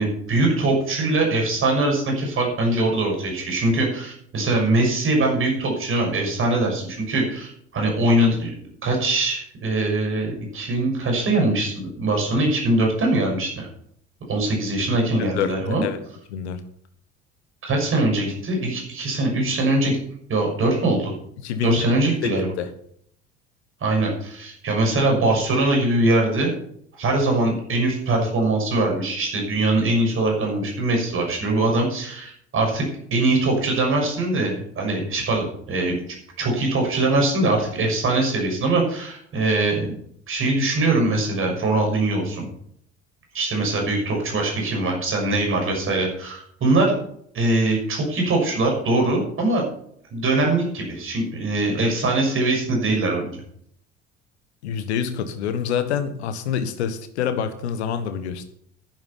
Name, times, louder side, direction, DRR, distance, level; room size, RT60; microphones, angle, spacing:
voice 1, 0.0-8.5 8.8-13.7 14.3-15.8 17.6-20.0 20.3-21.2 21.6-22.5 23.8-26.5 27.0-32.9 33.1-36.0 36.4-39.9 40.3-42.5 43.3-46.9 47.3-49.6 50.1-53.4, right 2 dB, 35° right, 1 dB, 6.3 m, -22 dB
voice 2, 15.2-16.0 16.3-16.6 21.4-22.7 54.6-58.4, left 8 dB, 70° left, 10 dB, 1.4 m, -27 dB
10.5 x 10.5 x 5.7 m, 0.67 s
figure-of-eight pair, 60°, 35 cm